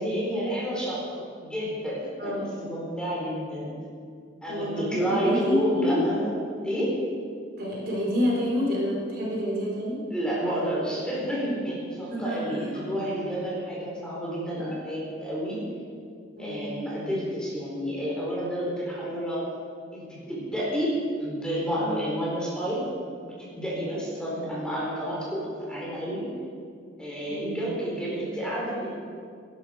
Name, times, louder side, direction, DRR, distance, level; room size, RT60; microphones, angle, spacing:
voice 1, 0.0-3.7 4.4-6.3 6.6-6.9 10.1-15.6 16.4-19.4 19.9-20.9 21.2-22.8 23.4-25.4 25.7-26.2 27.0-28.9, equal, 5° left, -6 dB, 4.1 m, -30 dB
voice 2, 4.5-6.0 7.6-10.0 12.1-12.6 16.4-16.7 21.8-22.0 27.3-27.6, equal, 55° right, -4 dB, 4.2 m, -28 dB
19.0 x 11.5 x 5.1 m, 2.3 s
head